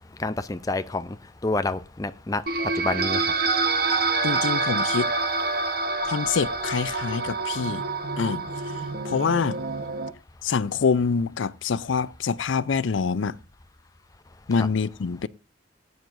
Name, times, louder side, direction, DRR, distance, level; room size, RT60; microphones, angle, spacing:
voice 1, 0.2-1.1 1.4-2.4 2.7-3.3, left 2 dB, 20° left, 0.5 m, -28 dB
sound 1, 2.5-10.1, right 3 dB, 50° right, 1.1 m, -27 dB
voice 2, 4.2-5.1 6.0-7.8 8.2-8.4 9.0-9.6 10.4-13.4 14.5-15.3, left 5 dB, 75° left, 0.5 m, -25 dB
19.0 x 9.4 x 2.6 m
head